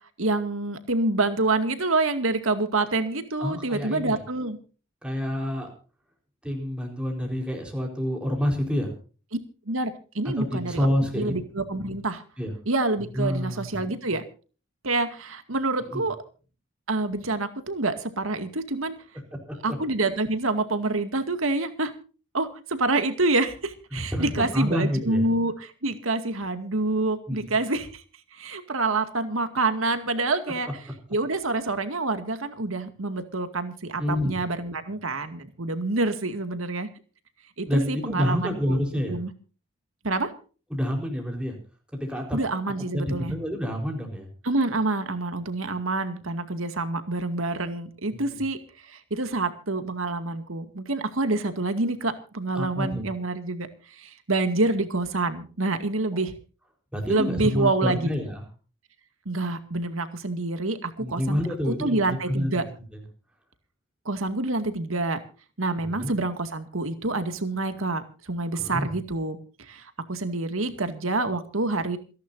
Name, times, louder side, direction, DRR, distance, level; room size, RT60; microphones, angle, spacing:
voice 1, 0.2-4.6 9.7-10.9 11.2-12.2 12.7-14.2 14.8-16.2 16.9-18.9 19.6-21.9 22.3-28.0 28.3-30.8 31.1-36.9 37.6-38.8 39.1-39.3 40.0-40.3 42.3-43.3 44.4-56.3 57.1-58.1 59.3-62.6 64.1-65.2 65.6-72.0, right 2 dB, 90° right, 8 dB, 2.2 m, -27 dB
voice 2, 3.4-4.2 5.0-5.7 6.4-8.9 10.2-11.3 12.4-12.5 13.1-13.8 15.9-16.1 19.3-19.6 23.9-25.3 27.3-27.5 34.0-34.4 37.7-39.2 40.7-41.6 41.9-42.4 42.9-44.3 48.1-48.4 52.5-53.0 56.9-58.4 61.0-62.6 65.8-66.1 68.5-68.9, equal, 5° right, 1 dB, 4.4 m, -28 dB
28.0 x 11.0 x 2.7 m, 0.38 s
head